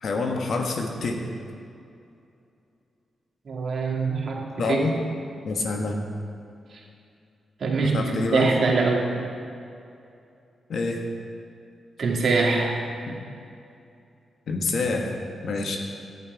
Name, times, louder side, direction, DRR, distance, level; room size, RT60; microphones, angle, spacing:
voice 1, 0.0-1.2 4.6-4.9 5.4-6.0 7.9-8.5 10.7-11.0 13.1-13.2 14.5-15.8, left 3 dB, 70° left, 2 dB, 1.4 m, -27 dB
voice 2, 3.5-4.8 6.7-6.8 7.6-9.1 12.0-12.8, right 4 dB, 60° right, -1 dB, 2.1 m, -23 dB
11.0 x 9.3 x 4.7 m, 2.5 s
supercardioid pair, 55°, 0 cm